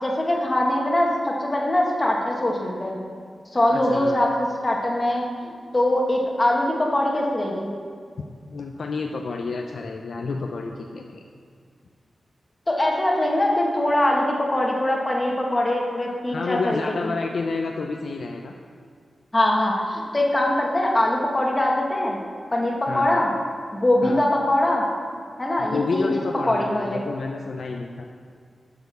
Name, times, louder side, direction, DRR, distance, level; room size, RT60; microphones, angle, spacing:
voice 1, 0.0-3.0 3.5-7.7 12.7-17.1 19.3-22.2 22.5-23.3 23.7-24.9 25.4-26.1 26.5-27.0, left 1 dB, 20° left, -1 dB, 1.6 m, -22 dB
voice 2, 3.7-4.2 8.5-11.2 16.3-18.6 22.9-23.2 24.0-24.2 25.7-28.0, left 4 dB, 65° left, 2 dB, 0.6 m, -29 dB
10.5 x 6.9 x 6.9 m, 2.1 s
wide cardioid pair, 165°, 0 cm